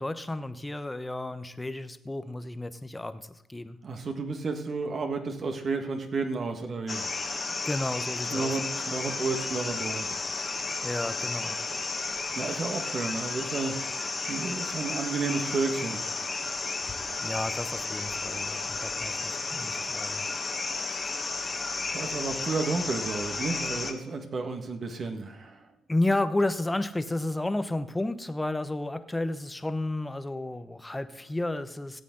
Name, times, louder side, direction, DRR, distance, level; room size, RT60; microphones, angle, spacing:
voice 1, 0.0-3.8 7.6-8.5 10.8-11.6 17.2-20.3 25.9-32.0, left 2 dB, 15° left, 11 dB, 0.9 m, -32 dB
voice 2, 3.8-7.2 8.3-10.5 12.3-16.4 21.9-25.7, right 4 dB, 45° right, 5 dB, 1.6 m, -32 dB
sound 1, 6.9-23.9, left 3 dB, 30° left, 1.4 m, -33 dB
17.0 x 8.3 x 3.8 m, 0.81 s
cardioid pair, 90°, 0 cm